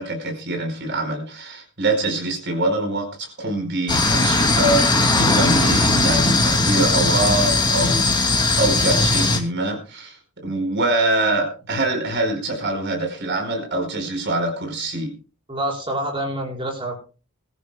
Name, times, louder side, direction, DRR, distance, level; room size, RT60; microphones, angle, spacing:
voice 1, 0.0-10.2 10.4-15.1, right 2 dB, 55° right, 4 dB, 4.9 m, -24 dB
sound 1, 3.9-9.4, left 2 dB, 20° left, 2.3 m, -18 dB
voice 2, 15.5-17.0, right 1 dB, 25° right, 0 dB, 4.7 m, -27 dB
22.0 x 14.0 x 2.3 m, 0.34 s
head